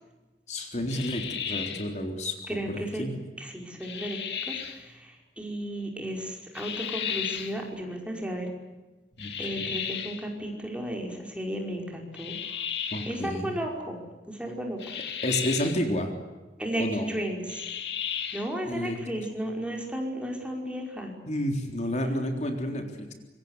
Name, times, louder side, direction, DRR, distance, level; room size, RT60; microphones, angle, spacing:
voice 1, 0.5-2.3 2.7-3.2 9.2-9.6 12.9-13.6 15.2-16.1 16.8-17.1 18.6-19.3 21.3-23.1, left 1 dB, 40° left, 4 dB, 3.7 m, -30 dB
sound 1, 0.9-1.9 3.8-4.8 6.5-7.6 9.2-10.3 12.1-13.2 14.8-15.8 17.5-18.5, left 8 dB, 70° left, 2.6 m, -34 dB
voice 2, 2.5-3.1 3.4-8.5 9.4-12.3 13.1-14.0 14.3-14.8 16.6-17.6 18.3-21.1, right 1 dB, 5° right, 1 dB, 5.4 m, -34 dB
26.5 x 24.0 x 8.2 m, 1.2 s
head